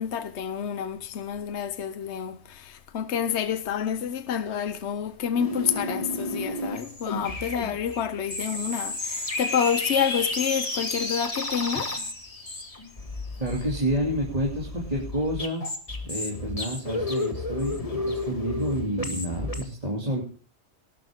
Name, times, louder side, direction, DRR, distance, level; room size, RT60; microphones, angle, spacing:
voice 1, 0.0-12.0, left 8 dB, 70° left, 1.2 m, -28 dB
sound 1, 5.3-19.6, left 2 dB, 30° left, 1.9 m, -32 dB
voice 2, 13.4-15.6 16.1-20.2, equal, 35° right, 2.9 m, -29 dB
19.0 x 12.0 x 3.6 m
omnidirectional pair, 1.2 m